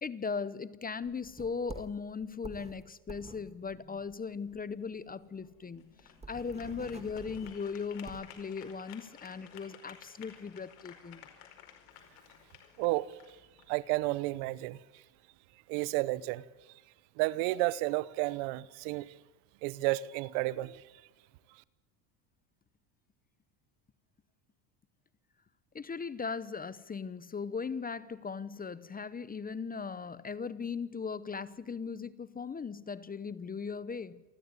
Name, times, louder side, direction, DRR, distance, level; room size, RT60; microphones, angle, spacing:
voice 1, 0.0-11.3 25.7-34.2, left 5 dB, 15° left, 0.8 m, -38 dB
sound 1, 1.0-4.8 5.1-5.2 5.5-5.6 5.9-8.4, right 3 dB, 10° right, 1.8 m, -49 dB
sound 2, 4.4-14.5, left 9 dB, 75° left, 4.9 m, -55 dB
voice 2, 12.8-13.1 13.7-14.8 15.7-16.4 17.2-19.1 19.6-20.8, right 19 dB, 75° right, 1.0 m, -31 dB
28.5 x 12.0 x 9.6 m
supercardioid pair, 105°, 50 cm